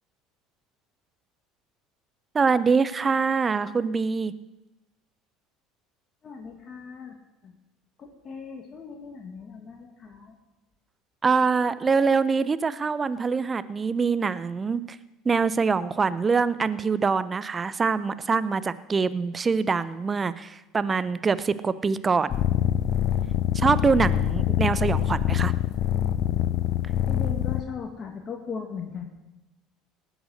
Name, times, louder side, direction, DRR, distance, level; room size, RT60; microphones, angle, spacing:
voice 1, 2.3-4.3 11.2-15.0 15.2-22.4 23.5-25.5, right 5 dB, 30° right, 15 dB, 0.7 m, -24 dB
voice 2, 6.2-7.1 7.4-7.5 8.0-10.4 27.1-29.0, left 5 dB, 40° left, 2 dB, 2.0 m, -38 dB
sound 1, 22.3-27.6, left 11 dB, 60° left, 0.7 m, -25 dB
18.5 x 8.1 x 6.5 m, 0.99 s
hypercardioid pair, 70°, 0 cm